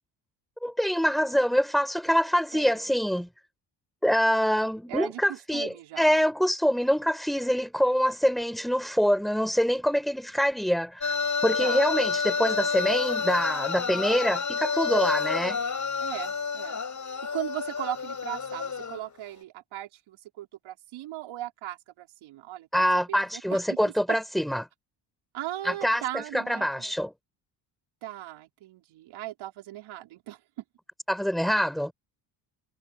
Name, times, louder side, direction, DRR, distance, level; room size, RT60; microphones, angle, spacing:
voice 1, 0.6-3.3 4.0-11.1 11.4-15.6 22.7-24.7 25.6-27.1 31.1-31.9, equal, ahead, 5.3 m, -25 dB
voice 2, 4.9-6.2 11.6-11.9 16.0-16.8 17.3-23.8 24.1-24.2 25.3-26.9 28.0-30.4, right 14 dB, 80° right, 5.3 m, -38 dB
sound 1, 11.0-19.1, left 5 dB, 40° left, 4.7 m, -29 dB
supercardioid pair, 65°, 47 cm